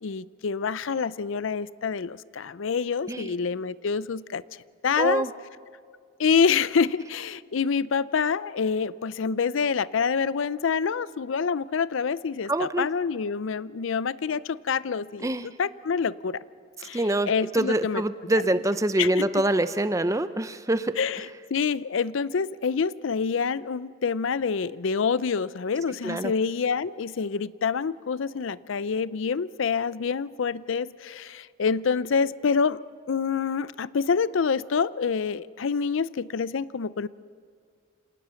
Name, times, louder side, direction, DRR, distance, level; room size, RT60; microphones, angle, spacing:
voice 1, 0.0-4.4 4.8-5.2 6.2-16.4 16.8-18.0 19.0-19.3 21.0-21.3 21.5-32.8 33.1-37.1, left 5 dB, 70° left, 18 dB, 0.5 m, -27 dB
voice 2, 5.0-5.3 12.5-12.9 15.2-15.5 16.9-20.9 26.0-26.3, right 1 dB, 15° right, 12 dB, 0.5 m, -25 dB
27.5 x 18.5 x 7.0 m, 2.1 s
head